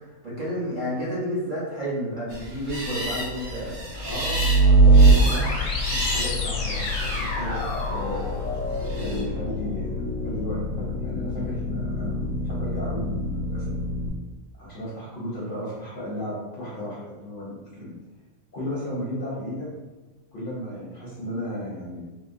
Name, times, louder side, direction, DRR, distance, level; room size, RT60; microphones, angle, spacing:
voice 1, 0.2-3.8, equal, 40° right, -9 dB, 0.8 m, -30 dB
sound 1, 2.3-9.2, equal, 65° right, 1.2 m, -33 dB
voice 2, 3.9-7.6 7.9-8.2 8.9-10.0 10.2-13.7 14.6-18.0 18.5-19.7 20.3-22.0, left 1 dB, 50° left, -8 dB, 0.7 m, -34 dB
sound 2, 4.1-14.1, right 2 dB, 80° left, 1.1 m, -23 dB
3.7 x 2.0 x 2.5 m, 1.1 s
omnidirectional pair, 1.5 m